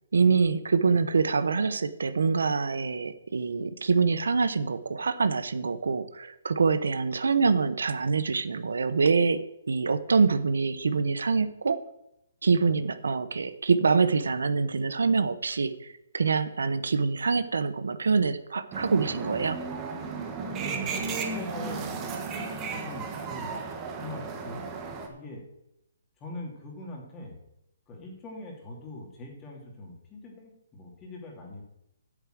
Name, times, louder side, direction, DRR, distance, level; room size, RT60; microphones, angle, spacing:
voice 1, 0.1-9.4 9.7-11.8 12.4-19.6, right 4 dB, 85° right, 12 dB, 0.9 m, -25 dB
sound 1, 18.7-25.1, right 4 dB, 15° right, 1.4 m, -34 dB
voice 2, 20.6-21.0 21.3-22.0 22.7-23.6 24.0-24.7 25.1-25.4 26.2-27.4 27.9-31.6, left 2 dB, 15° left, 0 dB, 2.6 m, -42 dB
8.6 x 6.9 x 7.7 m, 0.84 s
hypercardioid pair, 160°, 0 cm